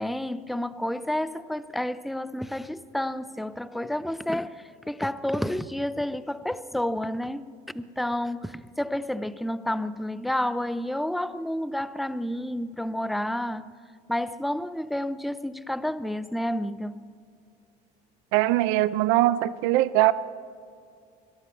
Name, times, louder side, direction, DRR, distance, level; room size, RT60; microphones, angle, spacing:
voice 1, 0.0-13.7 14.1-17.1, left 1 dB, ahead, 0.4 m, -30 dB
voice 2, 18.3-20.1, right 16 dB, 80° right, 0.4 m, -21 dB
19.0 x 11.0 x 4.3 m
supercardioid pair, 95°, 20 cm